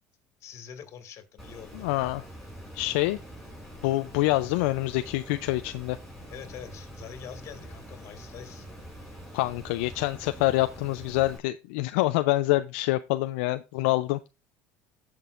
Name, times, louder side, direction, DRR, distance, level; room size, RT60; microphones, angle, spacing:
voice 1, 0.4-1.9 6.3-8.7, left 8 dB, 55° left, 2.0 m, -44 dB
Water, 1.4-11.4, right 1 dB, ahead, 5.0 m, -45 dB
voice 2, 1.7-2.3 2.7-3.2 3.8-6.0 9.3-14.2, left 18 dB, 85° left, 0.4 m, -26 dB
18.0 x 6.0 x 2.5 m
supercardioid pair, 100°, 6 cm